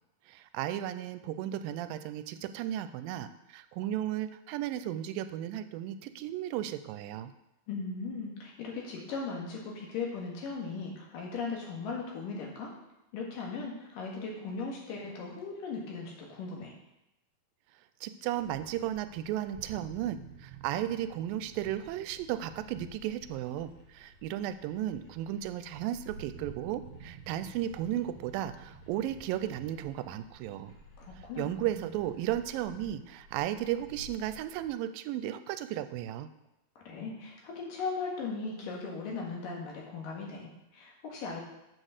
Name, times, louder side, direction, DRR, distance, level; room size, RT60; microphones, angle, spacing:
voice 1, 0.3-7.3 18.0-30.7 31.2-36.3, right 12 dB, 90° right, 12 dB, 2.3 m, -35 dB
voice 2, 7.7-12.7 13.1-16.7 31.0-31.8 36.8-41.4, left 4 dB, 75° left, -1 dB, 3.4 m, -38 dB
sound 1, 18.4-34.7, left 1 dB, 90° left, 4.2 m, -55 dB
sound 2, 19.5-24.5 26.1-31.8, right 10 dB, 70° right, 2.0 m, -53 dB
7.6 x 6.3 x 6.6 m, 0.90 s
omnidirectional pair, 4.0 m